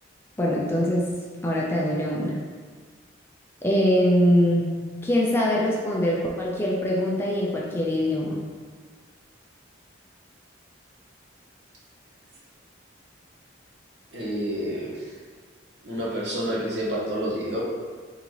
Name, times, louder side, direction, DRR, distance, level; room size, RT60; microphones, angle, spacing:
voice 1, 0.4-1.1 1.4-2.4 3.6-4.7 5.0-8.4, equal, 10° left, -4 dB, 0.4 m, -23 dB
voice 2, 14.1-15.1 15.8-17.6, equal, 60° right, -5 dB, 1.0 m, -29 dB
3.8 x 3.6 x 3.1 m, 1.5 s
head